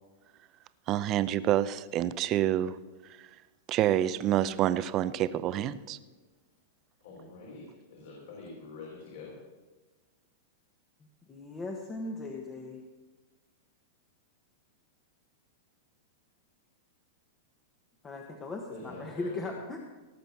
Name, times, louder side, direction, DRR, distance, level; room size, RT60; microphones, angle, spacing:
voice 1, 0.9-2.8 3.7-6.0, right 12 dB, 30° right, 14 dB, 0.5 m, -27 dB
voice 2, 7.0-9.4 18.7-19.5, left 3 dB, 65° left, -3 dB, 4.0 m, -45 dB
voice 3, 11.3-12.8 18.0-20.0, left 2 dB, 15° left, 1 dB, 1.1 m, -38 dB
18.0 x 6.1 x 7.1 m, 1.2 s
supercardioid pair, 160°, 0 cm